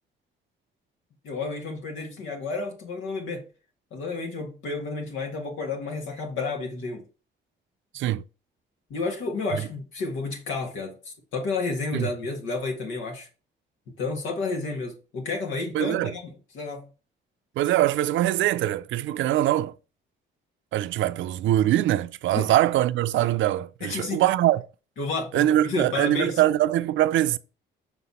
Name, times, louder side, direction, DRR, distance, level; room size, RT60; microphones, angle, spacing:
voice 1, 1.2-3.5 3.9-7.1 8.9-13.3 14.0-16.2 16.5-16.9 22.3-22.5 23.8-24.2 25.0-26.4, left 3 dB, 80° left, 1.6 m, -31 dB
voice 2, 15.7-16.1 17.6-19.8 20.7-24.7 25.3-27.4, right 13 dB, 75° right, 0.4 m, -23 dB
5.6 x 4.0 x 4.2 m
cardioid pair, 90°, 20 cm